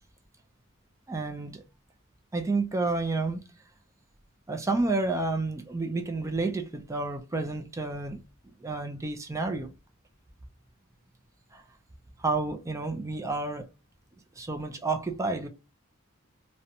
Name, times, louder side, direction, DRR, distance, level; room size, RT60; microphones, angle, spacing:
voice 1, 1.1-1.6 2.3-3.4 4.5-8.2 8.6-9.7 11.5-11.6 12.2-13.7 14.4-15.5, right 3 dB, 15° right, 0.3 m, -30 dB
2.6 x 2.1 x 2.6 m
head